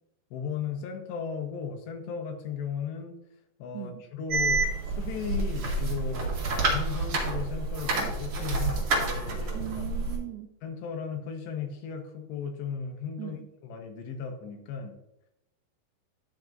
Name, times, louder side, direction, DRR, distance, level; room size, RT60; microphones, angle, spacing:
voice 1, 0.3-3.2 3.6-9.9 10.6-15.0, left 6 dB, 80° left, 4 dB, 3.2 m, -36 dB
sound 1, 4.3-10.2, right 3 dB, 50° right, 1.9 m, -29 dB
voice 2, 9.5-10.5 13.2-13.4, right 15 dB, 80° right, 8 dB, 2.3 m, -38 dB
10.5 x 8.7 x 2.6 m, 0.87 s
omnidirectional pair, 4.9 m